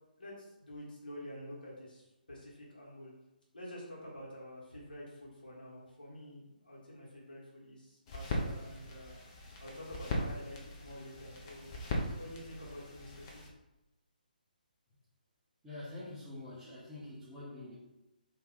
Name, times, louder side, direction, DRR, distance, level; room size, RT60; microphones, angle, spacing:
voice 1, 0.2-3.1 3.5-9.2 9.6-11.8 12.1-13.4, equal, 70° left, -5 dB, 1.4 m, -48 dB
sound 1, 8.1-13.5, left 1 dB, 30° left, 0.5 m, -39 dB
voice 2, 15.6-17.8, left 2 dB, 10° right, -9 dB, 0.7 m, -46 dB
2.7 x 2.4 x 3.9 m, 0.96 s
figure-of-eight pair, 140°, 5 cm